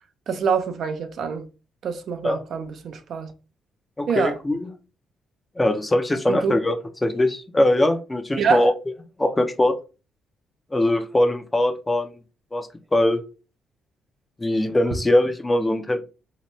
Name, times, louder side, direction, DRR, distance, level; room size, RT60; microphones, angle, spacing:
voice 1, 0.3-1.5 1.8-3.3 4.1-4.3 6.3-6.5 8.4-8.7, right 6 dB, 65° right, 0.4 m, -25 dB
voice 2, 4.0-4.7 5.6-6.8 7.0-8.7 9.2-9.7 10.7-12.1 12.5-13.2 14.4-16.0, left 1 dB, 15° left, 0.5 m, -21 dB
2.8 x 2.2 x 2.9 m
cardioid pair, 90°, 0 cm